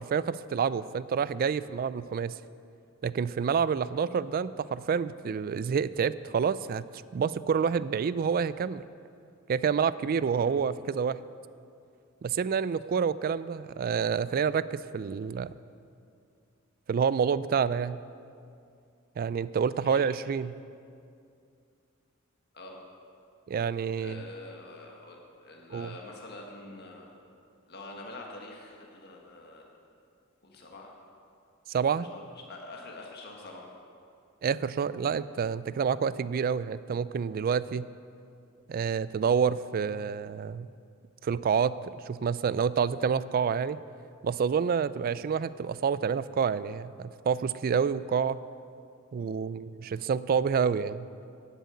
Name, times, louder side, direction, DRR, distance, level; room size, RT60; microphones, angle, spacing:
voice 1, 0.0-2.3 3.0-6.8 7.1-8.8 9.5-11.2 12.2-15.5 16.9-18.0 19.2-20.6 23.5-24.2 25.7-25.9 31.7-32.1 34.4-37.9 38.7-40.7 41.2-41.8 42.1-43.8 44.2-48.4 49.1-51.1, right 6 dB, 45° right, 17 dB, 0.3 m, -28 dB
voice 2, 24.0-27.2 27.7-29.7 30.4-30.9 32.0-33.7 49.1-49.3, left 2 dB, 50° left, -1 dB, 1.5 m, -46 dB
10.5 x 8.2 x 8.4 m, 2.4 s
head